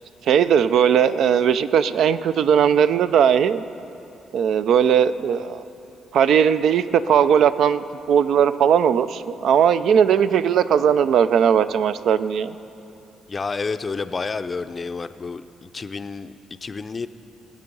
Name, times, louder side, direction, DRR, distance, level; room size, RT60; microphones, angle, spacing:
voice 1, 0.2-3.6 4.3-5.6 6.1-12.6, right 8 dB, 70° right, 13 dB, 0.4 m, -18 dB
voice 2, 13.3-17.1, left 4 dB, 30° left, 11 dB, 0.5 m, -30 dB
19.5 x 7.6 x 5.4 m, 2.8 s
cardioid pair, 90°, 0 cm